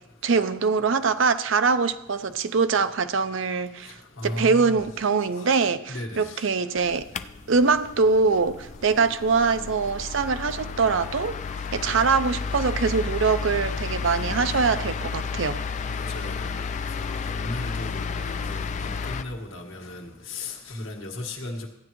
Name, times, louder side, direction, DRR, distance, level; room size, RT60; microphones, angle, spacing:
voice 1, 0.2-4.0 4.2-7.0 7.5-11.4 11.7-15.6, right 4 dB, 65° right, 11 dB, 0.6 m, -23 dB
voice 2, 4.2-4.8 5.4-5.6 5.9-6.4 15.9-16.7 17.0-21.7, left 2 dB, 70° left, 2 dB, 1.5 m, -36 dB
sound 1, 6.8-19.2, left 5 dB, 35° left, 0.3 m, -32 dB
15.0 x 9.6 x 3.1 m, 0.89 s
head